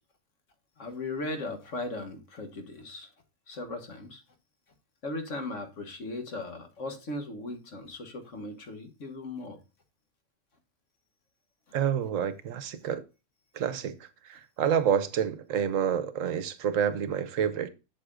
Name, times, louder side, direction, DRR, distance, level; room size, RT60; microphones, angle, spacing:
voice 1, 0.8-3.1 3.5-4.2 5.0-9.6, left 2 dB, 65° left, 1.6 m, -37 dB
voice 2, 11.7-13.0 13.5-17.7, right 8 dB, 75° right, 1.1 m, -28 dB
7.9 x 7.6 x 2.4 m
omnidirectional pair, 1.4 m